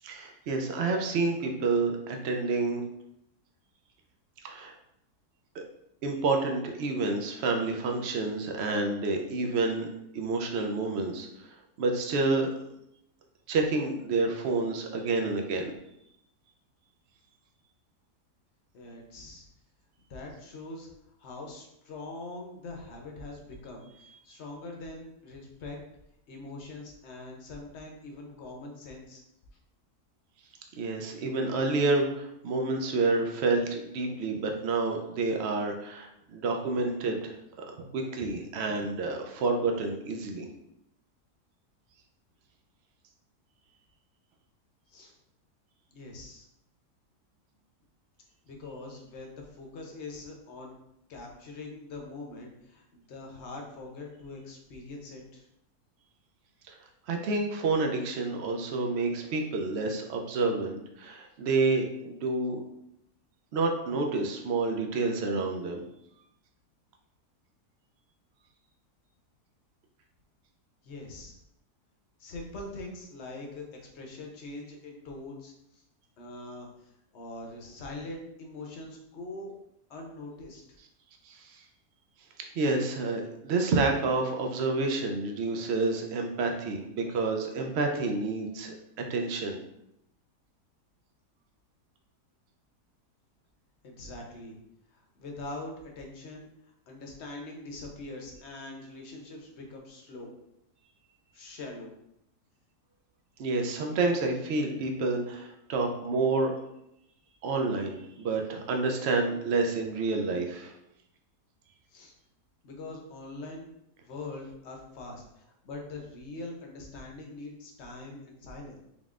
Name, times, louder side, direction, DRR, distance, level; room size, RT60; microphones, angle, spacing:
voice 1, 0.0-2.8 4.4-4.7 5.5-5.6 6.0-9.9 10.1-11.3 11.8-12.5 13.5-15.7 30.8-37.3 37.9-40.5 56.7-56.8 57.1-62.6 63.5-65.8 81.3-81.4 82.6-88.7 89.1-89.6 103.4-106.5 107.4-110.7, right 3 dB, 70° right, 3 dB, 0.6 m, -29 dB
voice 2, 18.7-19.4 20.1-20.9 21.2-25.8 26.3-29.2 44.9-45.1 45.9-46.5 48.5-50.7 51.1-55.4 70.8-71.4 72.2-75.5 76.2-76.7 77.1-79.5 79.9-80.8 93.8-94.6 95.2-96.5 96.9-100.3 101.3-101.9 111.9-112.1 112.6-113.7 114.0-118.8, left 2 dB, 55° left, 0 dB, 0.8 m, -43 dB
3.9 x 3.7 x 2.4 m, 0.80 s
omnidirectional pair, 1.7 m